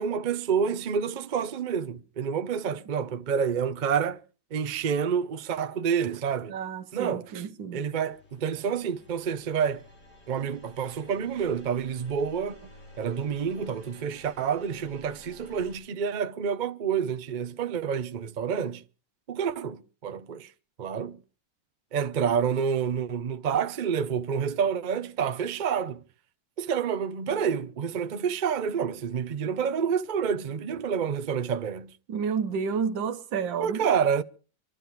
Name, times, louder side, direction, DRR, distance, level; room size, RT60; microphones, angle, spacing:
voice 1, 0.0-4.2 4.5-6.6 6.9-7.4 7.7-9.8 10.3-12.7 13.0-18.8 19.3-20.5 20.8-21.2 21.9-26.0 26.6-31.9 33.6-34.2, right 7 dB, 50° right, 0.5 m, -28 dB
voice 2, 6.5-7.8 32.1-33.9, right 6 dB, 90° right, 1.7 m, -30 dB
sound 1, 8.0-15.8, left 1 dB, 40° left, 6.3 m, -52 dB
26.5 x 12.5 x 3.5 m
omnidirectional pair, 2.0 m